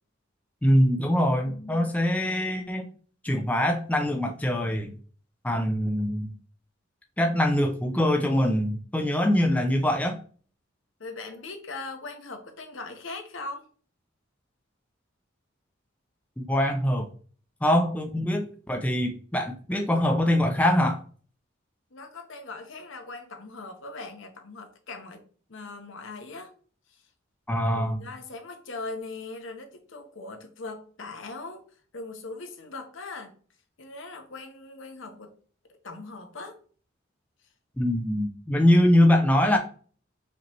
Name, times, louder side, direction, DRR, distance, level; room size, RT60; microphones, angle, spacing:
voice 1, 0.6-2.9 3.2-4.9 5.4-6.3 7.2-10.2 16.4-17.1 17.6-21.0 27.5-28.0 37.8-39.6, left 1 dB, 5° left, 3 dB, 0.4 m, -23 dB
voice 2, 1.4-1.9 11.0-13.7 21.9-26.5 26.9-27.0 27.7-31.6 31.9-33.3 33.8-35.3 35.8-36.6, left 3 dB, 70° left, 5 dB, 0.8 m, -40 dB
5.1 x 2.8 x 2.9 m, 0.43 s
head